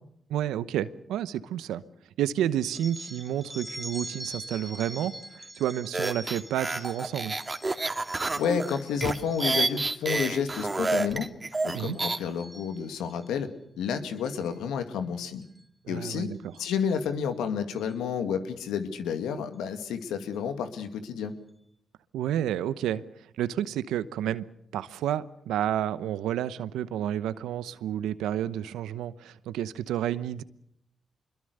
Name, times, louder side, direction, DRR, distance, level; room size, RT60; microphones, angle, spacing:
voice 1, 0.3-1.8 2.2-7.4 11.7-12.0 15.8-16.4 22.1-24.5 24.7-30.4, right 11 dB, 85° right, 0.9 m, -30 dB
sound 1, 2.6-9.9 10.4-10.8 11.1-11.5 11.9-13.3 14.2-14.5 15.4-15.6 16.5-16.6 17.0-17.1 17.7-17.9, right 1 dB, 10° right, 2.9 m, -44 dB
sound 2, 5.9-12.2, right 3 dB, 30° right, 2.4 m, -29 dB
voice 2, 8.4-11.3 11.6-13.5 13.8-15.4 15.9-16.3 16.6-21.3, left 7 dB, 85° left, 2.2 m, -30 dB
25.5 x 22.0 x 6.7 m
supercardioid pair, 45°, 0 cm